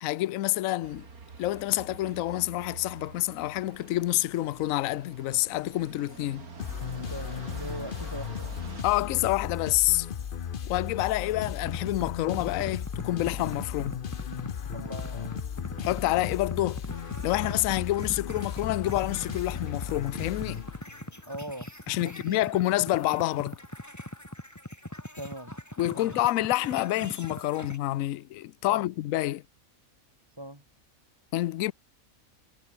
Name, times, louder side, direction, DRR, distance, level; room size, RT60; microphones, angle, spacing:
voice 1, 0.0-1.1 1.4-6.5 8.8-10.1 10.7-14.0 15.8-16.8 17.2-20.6 21.9-23.6 25.8-29.4 31.3-31.7, left 16 dB, 70° left, 1.0 m, -28 dB
sound 1, 0.8-8.8, right 5 dB, 80° right, 2.9 m, -46 dB
sound 2, 6.6-21.2, left 8 dB, 45° left, 0.8 m, -36 dB
voice 2, 7.1-8.6 14.7-15.4 21.3-21.7 22.0-22.4 25.1-25.6 25.9-26.2 28.7-28.8 30.4-30.6, right 1 dB, 15° right, 5.3 m, -40 dB
sound 3, 11.5-27.8, left 1 dB, 10° left, 4.5 m, -42 dB
omnidirectional pair, 1.5 m